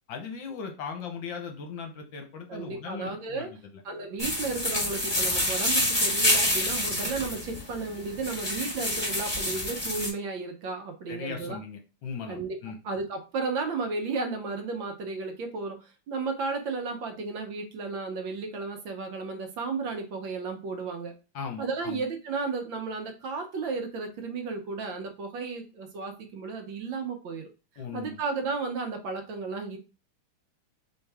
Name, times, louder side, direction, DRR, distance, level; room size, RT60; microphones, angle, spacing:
voice 1, 0.1-3.5 11.1-12.8 21.3-22.0 27.8-28.2, left 6 dB, 65° left, 4 dB, 1.4 m, -38 dB
voice 2, 2.5-3.5 3.8-11.6 12.2-12.6 12.8-21.1 21.6-27.5 27.9-29.8, right 4 dB, 65° right, 4 dB, 1.5 m, -33 dB
sound 1, 4.2-10.1, left 1 dB, 15° left, 1.3 m, -27 dB
4.4 x 3.6 x 3.4 m, 0.31 s
omnidirectional pair, 2.4 m